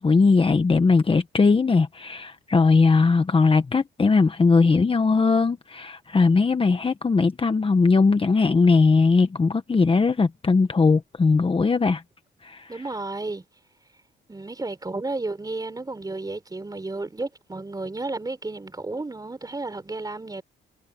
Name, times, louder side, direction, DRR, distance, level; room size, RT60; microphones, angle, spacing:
voice 1, 0.0-12.0 12.4-12.7, left 4 dB, 25° left, 1.3 m, -19 dB
voice 2, 12.7-13.4 14.3-20.4, right 2 dB, 20° right, 4.4 m, -32 dB
cardioid pair, 90°, 20 cm